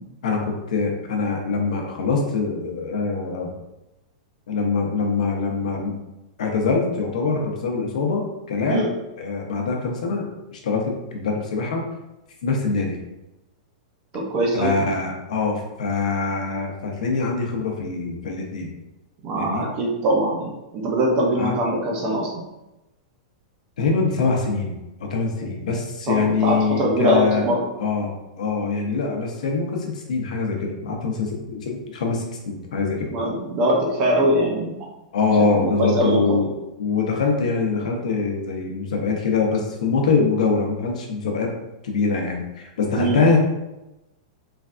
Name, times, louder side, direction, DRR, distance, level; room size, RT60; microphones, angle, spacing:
voice 1, 0.2-3.5 4.5-5.9 6.4-8.9 9.2-11.8 12.4-13.0 14.5-18.7 19.4-19.7 21.3-21.6 23.8-27.4 27.8-33.1 35.1-36.5 36.8-41.5 41.8-43.4, left 4 dB, 75° left, 1 dB, 0.7 m, -24 dB
voice 2, 14.1-14.7 19.2-20.5 20.8-22.3 26.1-27.6 33.1-34.8 35.5-36.4 42.9-43.2, right 1 dB, 20° right, 0 dB, 0.4 m, -22 dB
3.2 x 2.3 x 2.4 m, 0.96 s
supercardioid pair, 180°, 4 cm